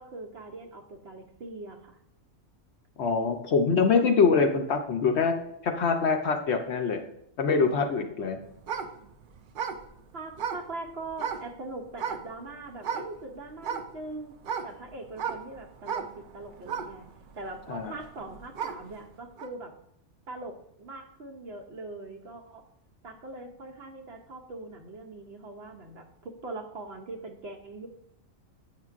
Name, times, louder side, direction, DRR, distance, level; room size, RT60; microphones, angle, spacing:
voice 1, 0.0-2.0 10.1-14.3 14.6-17.1 17.3-19.8 20.3-22.7 23.0-27.9, right 2 dB, 55° right, 3 dB, 0.8 m, -41 dB
voice 2, 3.0-5.3 5.6-7.0 7.4-8.4 17.7-17.9, left 5 dB, 60° left, 4 dB, 0.8 m, -24 dB
sound 1, 8.6-11.5 12.0-12.5 12.8-13.2 13.6-18.9 19.4-19.5, right 6 dB, 70° right, 0.4 m, -35 dB
8.8 x 5.7 x 2.4 m, 0.73 s
omnidirectional pair, 1.4 m